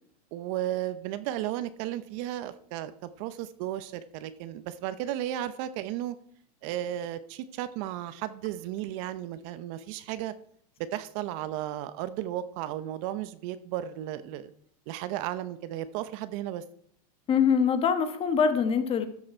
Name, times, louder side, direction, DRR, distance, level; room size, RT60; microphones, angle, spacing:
voice 1, 0.3-6.1 6.6-10.3 10.9-14.5 14.9-16.6, right 12 dB, 50° right, 13 dB, 0.8 m, -34 dB
voice 2, 17.3-19.1, left 6 dB, 25° left, 9 dB, 1.3 m, -24 dB
13.0 x 6.4 x 4.5 m, 0.63 s
hypercardioid pair, 120°, 21 cm